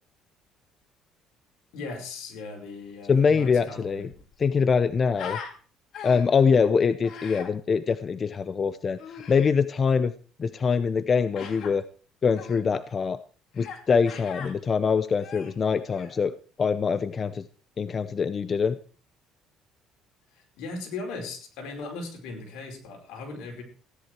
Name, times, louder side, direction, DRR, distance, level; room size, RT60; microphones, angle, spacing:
voice 1, 1.7-4.1 20.3-23.6, left 3 dB, 80° left, 2 dB, 5.3 m, -38 dB
voice 2, 3.1-4.1 4.4-5.4 6.0-9.0 9.3-10.1 10.4-11.8 12.2-13.2 13.6-17.5 17.8-18.8, left 5 dB, 35° left, 13 dB, 0.7 m, -24 dB
Human voice, 4.0-5.5 5.9-6.4 7.0-7.5 9.0-9.5 11.3-11.7 12.3-12.6 13.6-13.8 14.1-14.5 15.1-16.2, left 7 dB, 55° left, 2.9 m, -40 dB
16.5 x 10.5 x 4.7 m, 0.40 s
cardioid pair, 115°, 0 cm